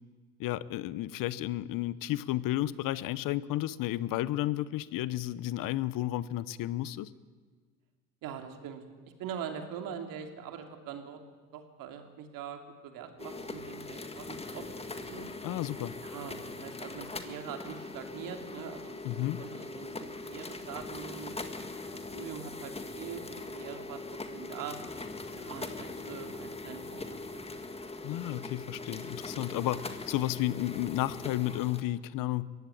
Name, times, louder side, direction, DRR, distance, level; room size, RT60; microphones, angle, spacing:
voice 1, 0.4-7.1 15.4-15.9 19.0-19.4 28.0-32.5, left 15 dB, 70° left, 18 dB, 0.9 m, -32 dB
voice 2, 8.2-8.8 9.2-11.2 11.5-15.3 16.0-19.9 20.3-21.3 21.7-24.0 24.3-24.8 25.3-27.6, right 8 dB, 70° right, 5 dB, 3.0 m, -43 dB
sound 1, 13.2-31.8, left 2 dB, 15° left, 1.9 m, -41 dB
22.0 x 16.5 x 9.2 m, 1.5 s
cardioid pair, 100°, 35 cm